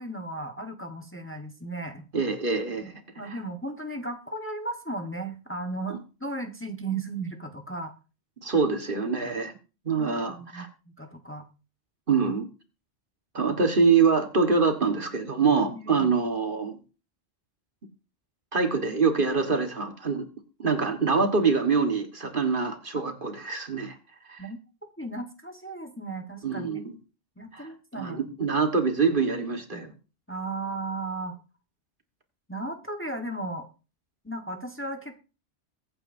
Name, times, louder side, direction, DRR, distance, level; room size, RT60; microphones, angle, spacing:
voice 1, 0.0-2.0 2.8-7.9 9.4-9.6 10.0-10.6 11.0-11.5 15.7-16.1 24.4-24.6 25.0-26.8 27.4-28.4 29.7-29.9 30.3-31.4 32.5-33.7 34.2-35.1, right 2 dB, 10° left, 4 dB, 1.3 m, -35 dB
voice 2, 2.1-2.9 3.2-3.4 8.4-9.5 9.9-10.7 12.1-12.5 13.3-16.8 18.5-20.3 20.6-24.0 24.3-24.4 26.4-27.0 27.5-27.7 28.0-29.9, right 5 dB, 50° right, 6 dB, 1.6 m, -25 dB
23.0 x 8.9 x 2.7 m, 0.33 s
omnidirectional pair, 1.2 m